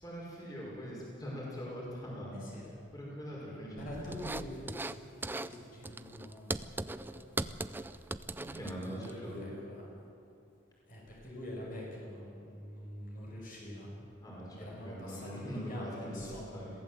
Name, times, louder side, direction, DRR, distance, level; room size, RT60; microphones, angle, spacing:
voice 1, 0.0-2.4 2.9-4.1 8.3-9.5 14.2-16.7, equal, 20° left, -4 dB, 5.4 m, -42 dB
voice 2, 2.3-2.6 3.8-7.7 8.5-9.9 10.9-13.9 14.6-16.6, left 1 dB, 45° left, -3 dB, 5.3 m, -45 dB
sound 1, 4.1-5.0 5.2-5.5 5.8-9.1, right 2 dB, 10° right, 0.4 m, -39 dB
22.5 x 16.0 x 7.9 m, 2.5 s
head